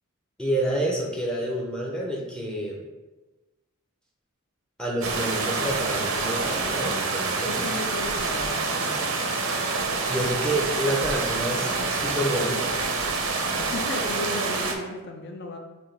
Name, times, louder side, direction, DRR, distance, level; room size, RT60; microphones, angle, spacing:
voice 1, 0.4-2.8 4.8-7.7 10.1-12.7, right 1 dB, 5° left, -1 dB, 0.5 m, -28 dB
sound 1, 5.0-14.7, right 3 dB, 70° right, 0.6 m, -27 dB
voice 2, 7.5-9.0 13.6-15.6, left 2 dB, 50° left, 3 dB, 0.5 m, -35 dB
6.2 x 2.7 x 3.2 m, 1.2 s
head